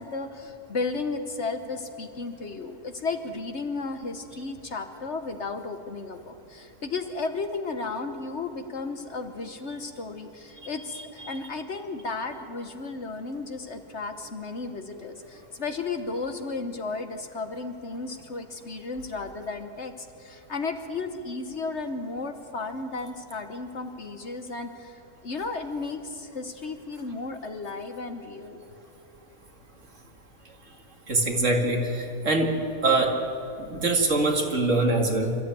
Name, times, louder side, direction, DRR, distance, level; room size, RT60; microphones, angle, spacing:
voice 1, 0.0-28.6, left 3 dB, 50° left, 7 dB, 1.3 m, -34 dB
voice 2, 10.9-11.3 31.1-32.5 32.8-33.1 33.6-35.4, right 2 dB, 55° right, 2 dB, 2.4 m, -24 dB
27.0 x 13.0 x 9.2 m, 2.7 s
omnidirectional pair, 1.6 m